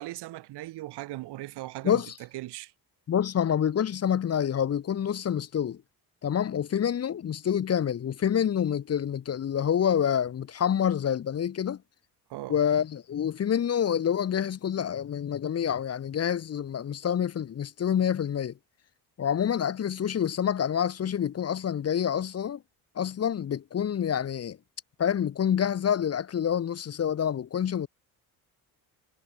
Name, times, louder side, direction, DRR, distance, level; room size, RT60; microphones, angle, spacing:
voice 1, 0.0-2.0 2.3-2.7 12.3-12.6, right 17 dB, 80° right, 2.5 m, -38 dB
voice 2, 3.1-5.8 6.2-11.8 12.5-18.5 19.2-22.6 23.0-24.6 25.0-27.9, left 9 dB, 40° left, 0.8 m, -27 dB
cardioid pair, 85°, 39 cm